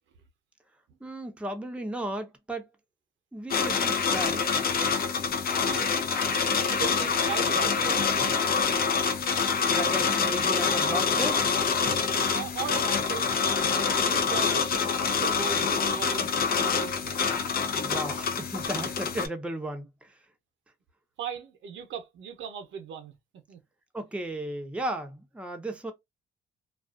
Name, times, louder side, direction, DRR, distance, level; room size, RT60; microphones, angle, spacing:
voice 1, 1.0-2.7 3.3-4.5 9.7-11.5 17.8-20.1 23.9-25.9, right 1 dB, 5° right, 0.6 m, -35 dB
sound 1, 3.5-19.3, left 5 dB, 50° left, 0.5 m, -26 dB
voice 2, 5.6-5.9 6.4-8.5 12.3-13.3 13.7-17.2 21.2-23.1 23.5-23.6, right 7 dB, 75° right, 0.7 m, -38 dB
2.4 x 2.3 x 2.3 m
cardioid pair, 90°, 20 cm